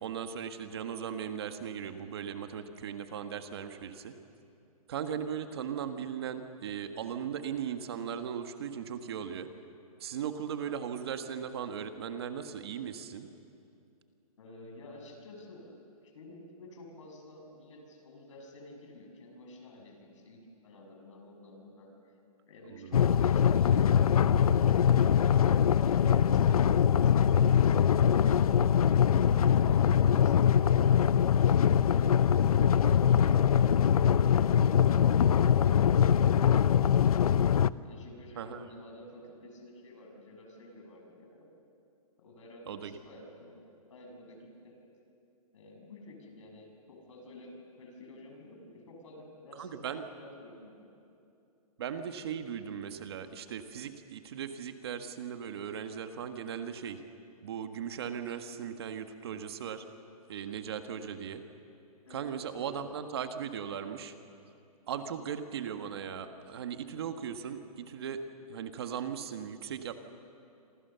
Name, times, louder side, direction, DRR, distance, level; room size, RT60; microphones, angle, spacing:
voice 1, 0.0-4.1 4.9-9.5 10.0-13.3 22.7-23.0 38.3-38.6 42.7-43.0 49.6-50.0 51.8-57.0 57.4-59.8 60.3-61.4 62.1-64.1 64.9-68.2 68.5-70.0, right 8 dB, 40° right, 8 dB, 1.5 m, -38 dB
voice 2, 14.4-22.1 22.5-30.9 33.8-34.3 37.8-41.5 42.2-43.6 43.9-44.8 45.5-50.9 62.0-62.9 65.0-65.2, left 1 dB, 55° left, 2 dB, 6.6 m, -51 dB
sound 1, 22.9-37.7, left 8 dB, 70° left, 0.7 m, -23 dB
27.0 x 26.0 x 6.9 m, 2.6 s
hypercardioid pair, 170°, 19 cm